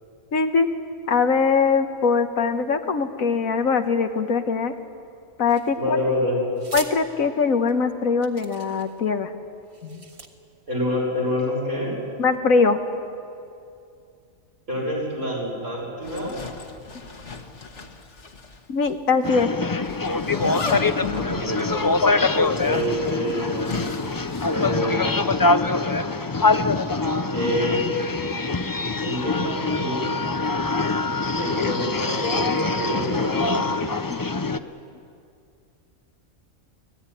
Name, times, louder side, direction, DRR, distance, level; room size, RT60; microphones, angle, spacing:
voice 1, 0.3-0.7 1.1-4.7 5.4-6.0 6.7-9.3 9.8-10.0 12.2-12.8 18.7-19.5 34.1-34.3, left 5 dB, 80° left, 7 dB, 1.6 m, -22 dB
sound 1, 5.5-6.0 6.6-6.9 7.7-7.8 8.2-9.0 9.6-10.3, right 3 dB, 40° right, 1.8 m, -39 dB
voice 2, 5.8-6.4 10.7-11.9 14.7-16.4 21.1-21.9 22.6-24.0 24.4-25.1 27.3-28.0 29.0-30.0 31.3-33.7, left 1 dB, 85° right, -3 dB, 6.8 m, -27 dB
Zipper (clothing), 16.0-18.6 18.9-19.0 19.8-24.8, left 4 dB, 60° left, 1.9 m, -35 dB
sound 2, 19.2-34.6, left 3 dB, 30° left, 0.4 m, -24 dB
24.5 x 17.5 x 10.0 m, 2.5 s
omnidirectional pair, 1.4 m